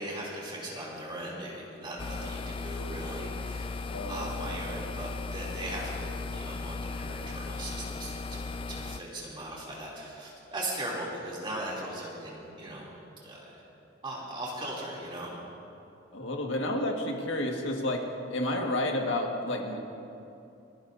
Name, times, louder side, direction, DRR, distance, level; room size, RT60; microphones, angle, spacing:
voice 1, 0.0-12.9 13.2-13.6 14.0-15.3, right 1 dB, 25° right, -4 dB, 2.9 m, -39 dB
sound 1, 2.0-9.0, left 3 dB, 25° left, 0.3 m, -37 dB
voice 2, 3.9-4.6 16.1-19.8, left 1 dB, 80° left, 1 dB, 1.7 m, -31 dB
29.0 x 11.5 x 2.7 m, 2.7 s
head